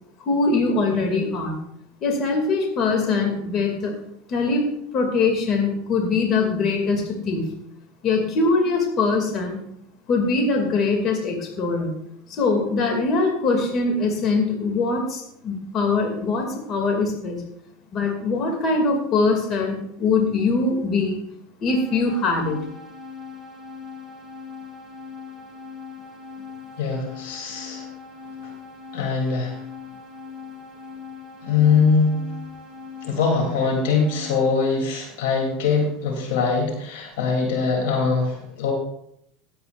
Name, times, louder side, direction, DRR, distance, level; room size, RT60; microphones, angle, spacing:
voice 1, 0.3-1.6 2.0-3.9 4.3-4.7 4.9-7.6 8.0-9.6 10.1-11.9 12.3-17.4 17.9-21.2 21.6-22.6, left 3 dB, 45° left, 2 dB, 2.4 m, -22 dB
sound 1, 21.7-34.5, left 5 dB, 10° right, 3.0 m, -40 dB
voice 2, 26.8-27.9 28.9-29.6 31.4-32.2 33.0-38.7, left 5 dB, 75° left, 1 dB, 3.0 m, -22 dB
18.0 x 8.1 x 2.5 m, 0.74 s
hypercardioid pair, 100°, 0 cm